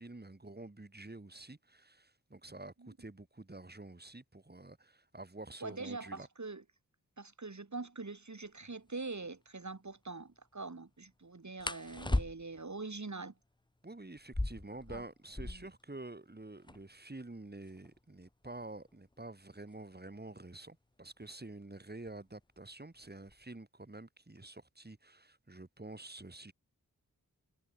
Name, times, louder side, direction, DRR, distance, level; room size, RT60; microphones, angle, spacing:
voice 1, 0.0-6.3 13.8-26.5, right 2 dB, 30° right, 3.3 m, -48 dB
voice 2, 5.6-6.6 7.2-13.3 14.9-15.0 15.4-15.7, right 3 dB, 55° right, 6.1 m, -44 dB
sound 1, 8.4-8.5 8.9-9.1 11.6-12.7 14.2-15.8 16.1-16.2 16.4-17.0 17.6-20.2 21.2-21.5 21.9-22.4 22.7-23.4, left 2 dB, 15° left, 1.0 m, -38 dB
cardioid pair, 45°, 35 cm